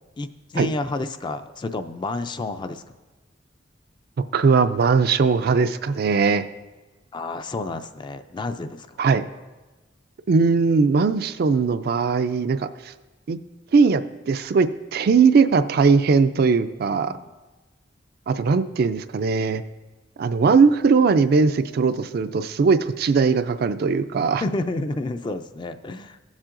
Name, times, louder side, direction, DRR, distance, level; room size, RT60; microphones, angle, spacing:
voice 1, 0.2-2.8 7.1-9.0 17.0-17.3 24.4-26.2, left 2 dB, 25° left, 9 dB, 0.4 m, -30 dB
voice 2, 4.3-6.5 9.0-9.2 10.3-12.9 13.3-13.4 13.7-17.2 18.3-19.6 20.2-24.4, right 5 dB, 55° right, 10 dB, 0.4 m, -19 dB
15.0 x 7.3 x 2.5 m, 1.2 s
head